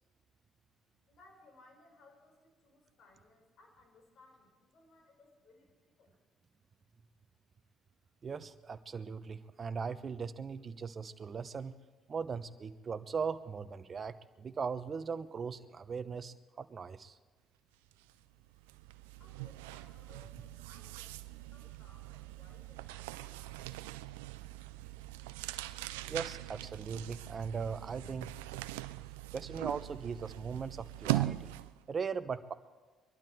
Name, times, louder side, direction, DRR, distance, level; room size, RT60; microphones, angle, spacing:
voice 1, 1.1-6.1 19.2-23.8, left 3 dB, 60° left, 3 dB, 4.1 m, -63 dB
voice 2, 8.2-11.7 12.1-17.2 26.1-28.4 29.3-31.5 31.9-32.5, right 5 dB, 40° right, 13 dB, 0.9 m, -39 dB
sound 1, 17.9-18.1 18.4-31.8, right 17 dB, 90° right, 0.4 m, -41 dB
23.0 x 12.0 x 4.6 m, 1.3 s
hypercardioid pair, 60°, 0 cm